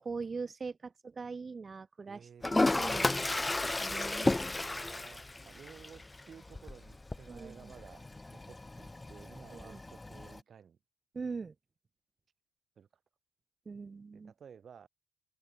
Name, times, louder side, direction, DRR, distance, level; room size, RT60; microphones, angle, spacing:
voice 1, 0.0-4.3 4.5-4.6 7.3-7.7 9.5-9.8 11.1-11.5 13.7-14.3, right 4 dB, 35° right, 0.5 m, -42 dB
voice 2, 2.1-2.4 2.9-3.1 3.8-10.8 12.8-12.9 14.1-14.9, right 7 dB, 50° right, 2.4 m, -55 dB
Toilet flush, 2.4-10.4, left 2 dB, 20° left, 0.7 m, -34 dB
hypercardioid pair, 50°, 0 cm